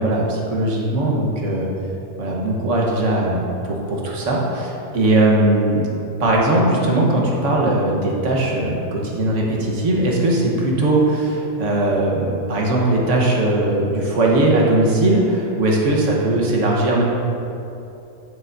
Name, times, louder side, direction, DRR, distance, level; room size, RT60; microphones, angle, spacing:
voice 1, 0.0-1.7 2.1-5.9 6.2-17.0, right 1 dB, 50° right, -3 dB, 1.4 m, -19 dB
9.8 x 7.8 x 2.6 m, 2.8 s
omnidirectional pair, 1.8 m